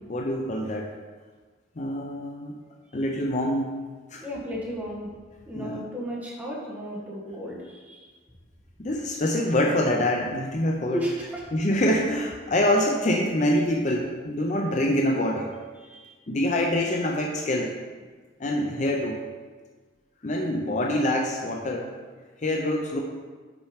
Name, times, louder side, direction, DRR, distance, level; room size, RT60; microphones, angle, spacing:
voice 1, 0.1-0.9 1.8-2.6 2.9-3.8 4.1-4.3 5.5-5.8 8.8-11.0 11.5-15.5 16.3-17.7 18.4-19.2 20.2-21.9 22.4-23.0, left 1 dB, 40° left, 1 dB, 0.5 m, -25 dB
voice 2, 4.2-5.1 5.5-7.6 7.9-8.0 10.9-11.4 15.9-16.1, equal, 10° right, -4 dB, 1.3 m, -33 dB
6.0 x 4.4 x 5.0 m, 1.4 s
head